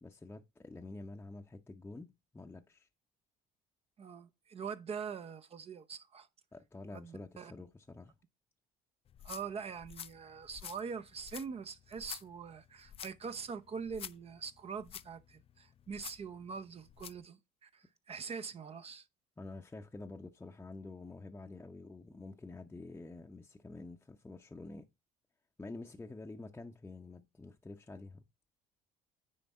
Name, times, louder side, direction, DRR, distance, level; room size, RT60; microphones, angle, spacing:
voice 1, 0.0-2.9 6.5-8.2 19.4-24.9 25.6-28.2, left 2 dB, 15° left, 0.7 m, -48 dB
voice 2, 4.0-6.3 6.9-7.5 9.2-19.1, right 6 dB, 35° right, 0.7 m, -43 dB
sound 1, 9.1-17.3, left 9 dB, 35° left, 0.4 m, -50 dB
9.6 x 3.4 x 4.2 m
supercardioid pair, 90°, 17 cm